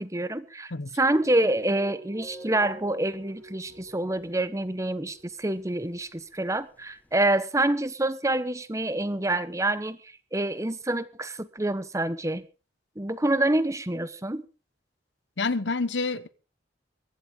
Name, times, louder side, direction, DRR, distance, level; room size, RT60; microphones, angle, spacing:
voice 1, 0.0-0.7 1.0-10.0 10.3-12.5 13.0-14.4, right 1 dB, 15° right, 0.9 m, -27 dB
sound 1, 1.0-6.9, right 1 dB, 55° right, 2.1 m, -49 dB
Subway metro underground, 2.2-4.4 4.6-4.7 5.0-5.2 5.5-5.9 6.2-7.2, right 1 dB, 10° left, 0.7 m, -48 dB
voice 2, 15.4-16.3, left 3 dB, 75° left, 1.0 m, -28 dB
23.0 x 11.0 x 3.8 m
head